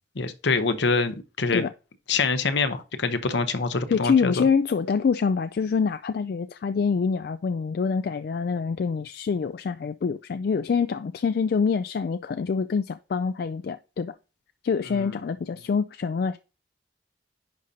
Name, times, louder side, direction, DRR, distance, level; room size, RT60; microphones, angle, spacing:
voice 1, 0.2-1.6 2.1-4.4 14.9-15.1, left 4 dB, 70° left, 0.8 m, -25 dB
voice 2, 3.9-14.1 14.6-16.4, left 5 dB, 55° left, 0.3 m, -25 dB
10.5 x 5.1 x 2.8 m
head